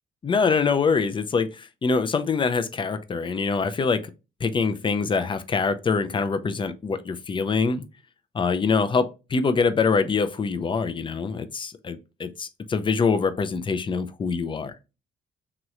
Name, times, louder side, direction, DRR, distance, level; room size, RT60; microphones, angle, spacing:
voice 1, 0.2-4.0 4.4-7.8 8.3-14.7, left 5 dB, 25° left, 0.4 m, -24 dB
3.0 x 2.9 x 2.4 m
cardioid pair, 90°, 20 cm